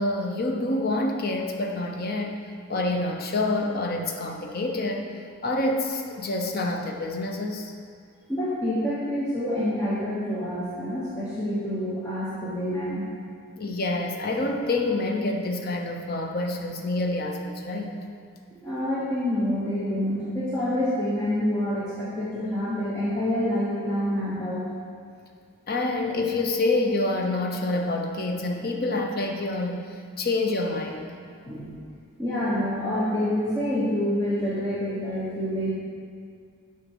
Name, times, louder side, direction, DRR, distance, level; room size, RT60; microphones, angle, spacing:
voice 1, 0.0-2.4 2.7-5.1 5.4-7.7 13.6-18.0 25.7-29.8 30.2-31.1, left 2 dB, 45° left, 2 dB, 0.6 m, -27 dB
voice 2, 8.3-13.1 18.6-24.6 31.4-31.7 32.2-35.7, left 1 dB, 15° left, -10 dB, 1.0 m, -27 dB
7.9 x 5.1 x 4.5 m, 2.2 s
head